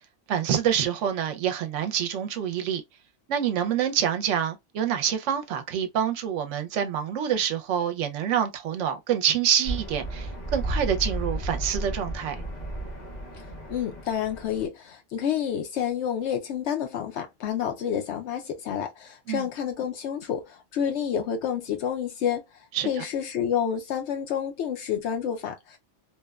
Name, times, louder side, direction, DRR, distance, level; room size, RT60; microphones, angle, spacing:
voice 1, 0.3-2.8 3.3-12.4 19.3-19.5 22.7-23.0, right 9 dB, 80° right, 0.9 m, -26 dB
sound 1, 9.6-14.7, right 1 dB, 40° left, 0.8 m, -33 dB
voice 2, 13.4-22.4 22.8-25.8, left 8 dB, 70° left, 0.8 m, -29 dB
3.0 x 2.1 x 2.2 m
omnidirectional pair, 1.2 m